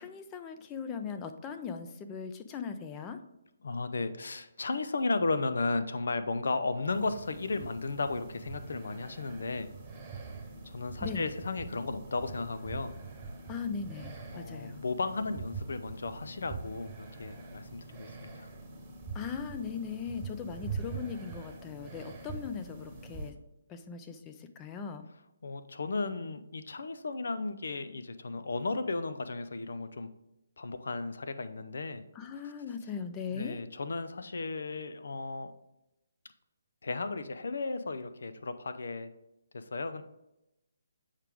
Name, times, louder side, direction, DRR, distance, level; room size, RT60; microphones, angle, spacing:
voice 1, 0.0-3.2 11.0-11.2 13.5-14.8 19.1-23.3 23.7-25.1 32.2-33.6, left 6 dB, 20° left, 8 dB, 0.5 m, -39 dB
voice 2, 3.6-9.7 10.6-12.9 14.3-18.5 25.4-30.1 30.6-32.0 32.8-32.9 33.3-35.5 36.8-39.1 39.5-40.0, left 3 dB, 70° left, 10 dB, 0.6 m, -34 dB
sound 1, 6.9-23.3, right 4 dB, 20° right, 1.1 m, -44 dB
7.4 x 4.9 x 3.5 m, 0.90 s
hypercardioid pair, 155°, 0 cm